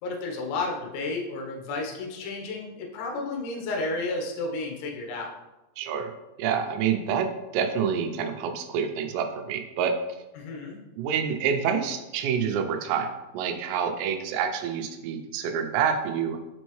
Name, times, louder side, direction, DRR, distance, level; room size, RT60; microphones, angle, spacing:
voice 1, 0.0-5.3 10.4-10.8, left 3 dB, 75° left, 1 dB, 3.1 m, -32 dB
voice 2, 5.8-6.1 6.4-10.0 11.0-16.4, right 7 dB, 85° right, 6 dB, 3.3 m, -27 dB
7.1 x 5.3 x 3.1 m, 1.0 s
omnidirectional pair, 5.9 m